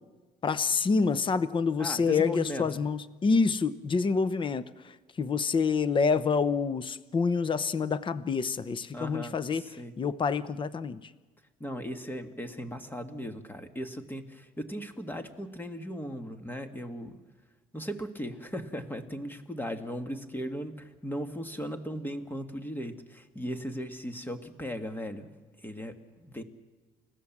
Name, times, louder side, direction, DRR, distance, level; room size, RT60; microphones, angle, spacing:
voice 1, 0.4-9.6 10.0-11.1, left 5 dB, 30° left, 14 dB, 0.8 m, -27 dB
voice 2, 1.8-2.7 8.9-9.9 11.6-17.2 17.7-25.3 25.6-26.4, equal, 10° left, 7 dB, 1.9 m, -37 dB
29.5 x 16.5 x 7.4 m, 1.3 s
cardioid pair, 110°, 17 cm